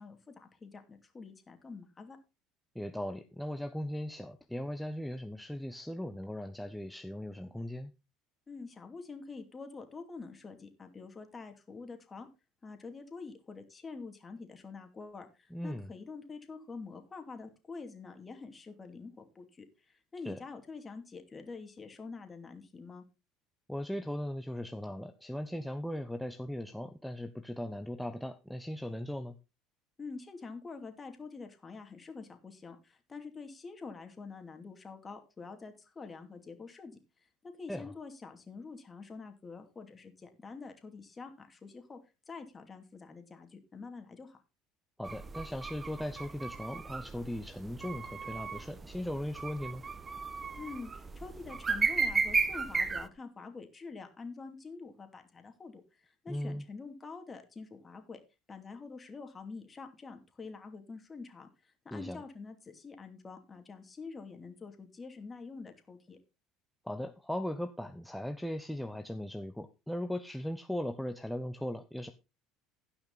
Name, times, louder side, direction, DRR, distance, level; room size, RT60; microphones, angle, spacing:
voice 1, 0.0-2.2 8.5-12.3 12.6-23.0 30.0-37.0 37.4-42.0 42.3-44.4 50.6-58.2 58.5-66.2, left 4 dB, 25° left, 6 dB, 2.7 m, -46 dB
voice 2, 2.7-7.9 15.5-15.9 20.2-20.4 23.7-29.4 37.7-37.9 45.0-49.8 56.3-56.6 61.9-62.2 66.8-72.1, left 1 dB, ahead, 7 dB, 0.9 m, -38 dB
sound 1, 45.0-53.1, right 4 dB, 25° right, 1.0 m, -35 dB
16.5 x 5.8 x 4.0 m, 0.28 s
supercardioid pair, 85°, 0 cm